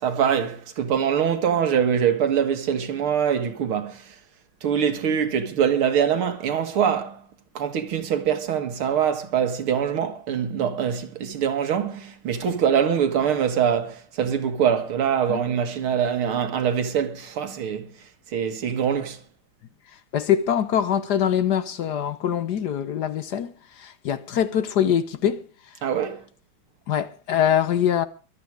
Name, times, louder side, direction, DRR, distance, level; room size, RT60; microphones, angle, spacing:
voice 1, 0.0-4.1 4.6-7.2 7.5-17.9 18.3-19.2 25.8-26.2, right 8 dB, 90° right, 2.5 m, -23 dB
voice 2, 20.1-25.4 26.9-28.1, left 9 dB, 60° left, 1.2 m, -23 dB
23.0 x 8.6 x 4.8 m
omnidirectional pair, 2.3 m